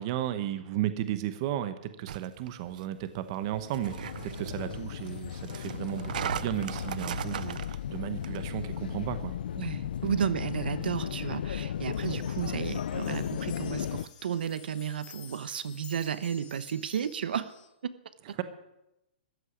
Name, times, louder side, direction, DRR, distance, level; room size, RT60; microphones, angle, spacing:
voice 1, 0.0-9.3 18.4-18.5, right 12 dB, 30° right, 12 dB, 0.9 m, -34 dB
sound 1, 2.1-9.3, right 10 dB, 55° right, 0.6 m, -39 dB
sound 2, 3.5-14.1, left 9 dB, 65° left, 0.5 m, -35 dB
sound 3, 4.2-9.1 9.4-9.5 10.0-10.1 11.8-17.7, left 7 dB, 20° left, 3.0 m, -55 dB
voice 2, 9.6-17.5 17.8-17.9, right 8 dB, 75° right, 14 dB, 1.0 m, -33 dB
14.0 x 8.2 x 9.7 m, 0.90 s
hypercardioid pair, 170°, 5 cm